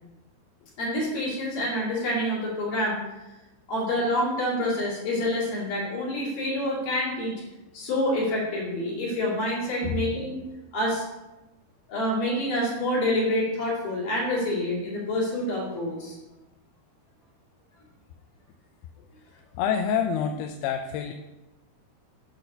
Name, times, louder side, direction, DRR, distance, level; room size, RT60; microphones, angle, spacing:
voice 1, 0.8-3.0 3.7-7.3 7.7-10.4 10.7-11.1 11.9-16.2, left 1 dB, 60° left, -6 dB, 3.9 m, -27 dB
voice 2, 19.6-21.1, left 7 dB, 85° left, 6 dB, 2.5 m, -27 dB
8.4 x 4.0 x 6.6 m, 1.0 s
omnidirectional pair, 4.6 m